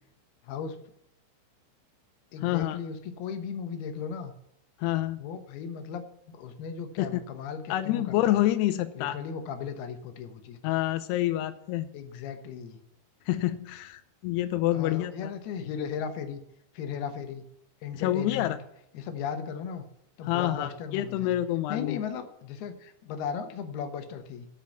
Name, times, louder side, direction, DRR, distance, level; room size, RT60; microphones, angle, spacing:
voice 1, 0.4-0.8 2.3-4.3 5.2-6.0 6.3-8.4 9.0-10.7 11.9-12.8 14.7-16.4 16.7-17.4 17.8-18.6 18.9-19.9 20.2-21.4 21.7-24.5, left 7 dB, 70° left, 8 dB, 2.7 m, -36 dB
voice 2, 2.4-2.8 4.8-5.2 7.0-7.2 7.7-9.2 10.6-11.9 13.3-15.3 17.9-18.6 20.2-22.0, left 14 dB, 85° left, 10 dB, 2.3 m, -27 dB
12.5 x 5.8 x 9.2 m, 0.78 s
omnidirectional pair, 5.4 m